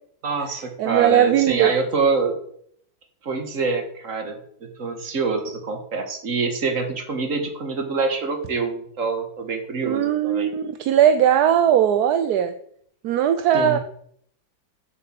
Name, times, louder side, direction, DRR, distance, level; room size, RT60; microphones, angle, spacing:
voice 1, 0.2-2.3 3.2-10.5 13.5-13.8, right 4 dB, 45° right, 5 dB, 1.9 m, -26 dB
voice 2, 0.8-1.7 9.8-12.5 13.0-13.8, right 10 dB, 65° right, 9 dB, 1.1 m, -19 dB
7.8 x 7.6 x 7.6 m, 0.66 s
omnidirectional pair, 2.1 m